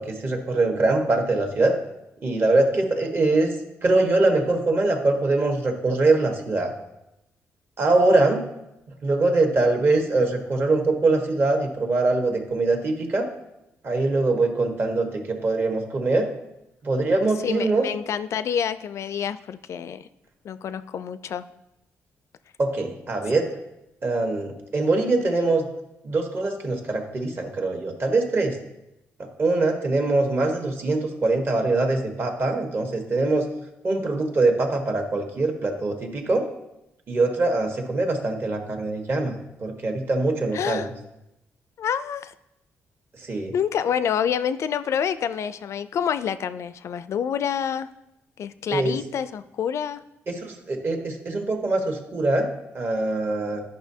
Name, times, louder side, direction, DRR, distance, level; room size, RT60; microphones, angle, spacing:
voice 1, 0.0-1.8 2.2-3.5 3.8-6.7 7.8-8.4 9.0-13.3 13.8-16.3 16.8-17.9 22.6-23.5 24.0-25.7 26.0-28.6 29.2-33.5 33.8-36.5 37.1-40.8 43.2-43.5 48.7-49.0 50.3-52.5 52.7-53.6, right 2 dB, 45° right, 3 dB, 1.3 m, -23 dB
voice 2, 17.4-20.1 20.4-21.5 40.5-40.9 41.8-42.3 43.5-47.9 48.4-50.0, left 8 dB, 65° left, 14 dB, 0.4 m, -27 dB
11.0 x 5.4 x 2.7 m, 0.89 s
cardioid pair, 90°, 5 cm